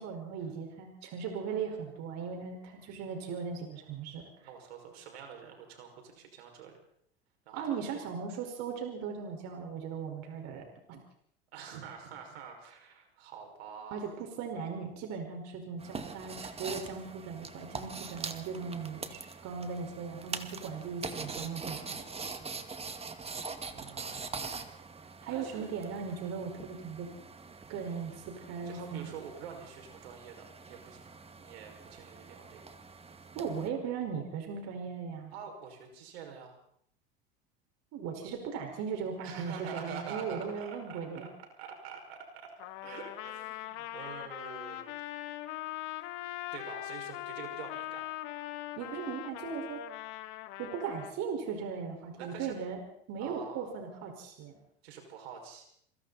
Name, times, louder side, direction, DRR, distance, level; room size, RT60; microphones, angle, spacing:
voice 1, 0.0-4.3 7.5-11.0 13.9-22.1 25.2-27.1 27.7-29.1 33.3-35.3 37.9-41.3 48.8-49.8 50.6-52.8 53.1-54.6, right 6 dB, 60° right, 3 dB, 5.1 m, -38 dB
voice 2, 4.4-6.7 7.5-8.1 11.5-14.1 23.7-24.6 25.0-25.7 28.6-32.6 35.3-36.6 39.2-41.3 41.6-42.5 42.8-45.2 46.5-48.0 52.2-52.5 53.2-53.7 54.8-55.6, right 6 dB, 80° right, 3 dB, 5.9 m, -46 dB
sound 1, 15.8-33.7, right 4 dB, 20° right, 2.1 m, -43 dB
Trumpet, 42.6-51.1, left 15 dB, 65° left, 2.1 m, -41 dB
27.0 x 23.5 x 4.2 m, 0.68 s
hypercardioid pair, 95°, 30 cm